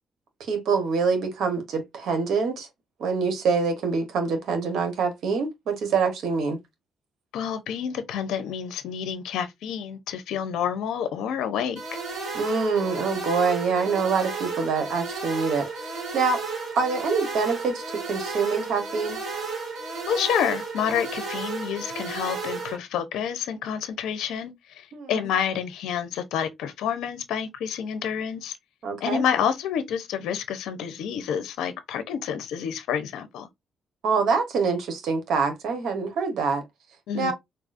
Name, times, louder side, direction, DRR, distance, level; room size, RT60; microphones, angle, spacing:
voice 1, 0.4-2.7 3.0-6.6 12.3-16.4 16.7-19.2 24.9-25.2 28.8-29.2 34.0-36.6 37.1-37.3, right 5 dB, 75° right, 1.0 m, -25 dB
voice 2, 7.3-11.8 20.1-28.6 29.0-33.5 37.1-37.3, left 8 dB, 85° left, 0.5 m, -28 dB
sound 1, 11.8-22.8, right 4 dB, 60° right, 2.0 m, -33 dB
3.8 x 2.3 x 2.4 m
cardioid pair, 90°, 0 cm